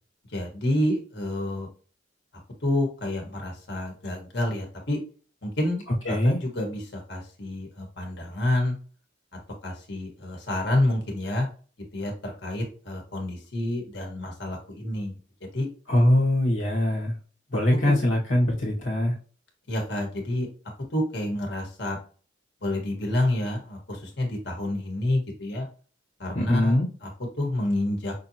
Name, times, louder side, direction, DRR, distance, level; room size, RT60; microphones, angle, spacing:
voice 1, 0.3-1.7 2.6-5.0 5.4-8.8 9.6-11.5 11.9-15.1 15.4-15.7 17.8-17.9 19.7-20.5 20.9-22.0 22.6-25.7 26.2-28.1, left 1 dB, 60° left, 1 dB, 1.6 m, -28 dB
voice 2, 6.0-6.4 15.9-17.2 17.5-19.2 26.3-26.9, left 1 dB, 80° left, -2 dB, 1.7 m, -22 dB
6.0 x 2.9 x 2.8 m, 0.38 s
head